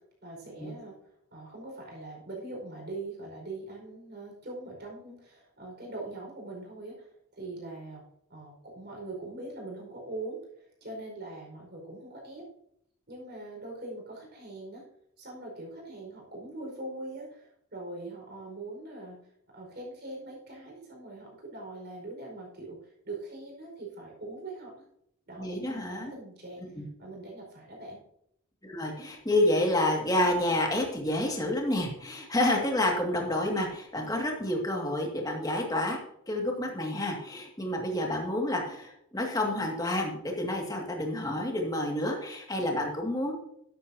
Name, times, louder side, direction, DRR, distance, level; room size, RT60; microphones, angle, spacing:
voice 1, 0.2-0.9 1.3-8.0 8.3-12.4 13.1-14.8 15.2-19.2 19.5-24.8 25.3-28.0, right 2 dB, 50° right, -1 dB, 5.0 m, -42 dB
voice 2, 25.4-26.1 26.8-26.9 28.6-36.0 36.3-43.3, left 1 dB, 15° left, 0 dB, 2.1 m, -29 dB
13.0 x 11.5 x 2.8 m, 0.74 s
head